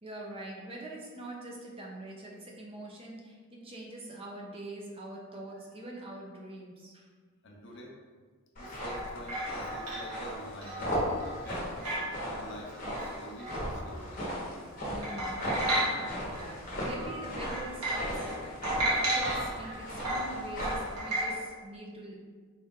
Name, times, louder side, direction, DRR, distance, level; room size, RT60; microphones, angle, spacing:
voice 1, 0.0-7.1 14.8-22.1, right 1 dB, 25° right, -2 dB, 0.5 m, -43 dB
voice 2, 7.4-8.0 8.6-12.0 12.3-15.0, equal, 55° left, 0 dB, 0.5 m, -48 dB
sound 1, 8.6-21.0, equal, 35° left, 1.0 m, -37 dB
sound 2, 8.6-14.3 14.7-14.8 15.0-16.5 16.8-21.3, right 1 dB, 85° right, 1.0 m, -34 dB
4.2 x 2.4 x 3.6 m, 1.5 s
head